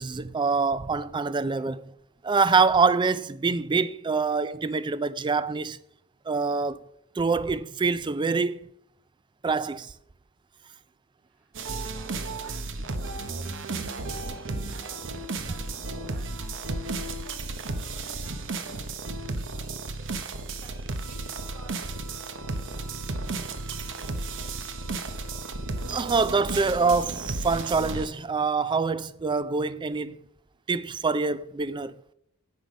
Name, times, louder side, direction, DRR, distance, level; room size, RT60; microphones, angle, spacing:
voice 1, 0.0-1.9 2.2-5.8 6.3-6.8 7.2-8.6 9.4-9.9 25.9-30.2 30.7-32.0, right 4 dB, 20° right, 0.3 m, -25 dB
voice 2, 11.2-18.9 19.3-20.1 20.5-22.9, right 2 dB, 85° right, 3.0 m, -54 dB
sound 1, 11.5-28.1, right 3 dB, 60° right, 0.9 m, -33 dB
10.0 x 6.7 x 5.2 m
head